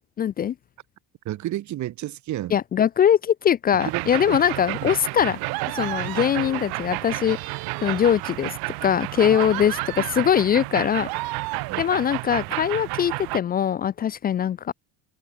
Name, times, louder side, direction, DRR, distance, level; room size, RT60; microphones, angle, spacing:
voice 1, 0.2-0.5 2.5-5.4 5.7-7.4 7.8-8.6 8.8-11.1 11.8-14.7, left 9 dB, 25° left, 0.4 m, -22 dB
voice 2, 1.2-2.5 3.8-4.4 4.8-5.0 9.7-9.8 11.7-11.9, right 14 dB, 45° right, 2.8 m, -32 dB
sound 1, 3.8-13.4, right 29 dB, 85° right, 2.0 m, -31 dB
sound 2, 4.4-4.9 5.5-6.7 7.1-8.4 9.0-10.3 11.0-11.9, right 21 dB, 65° right, 2.2 m, -35 dB
cardioid pair, 160°, 39 cm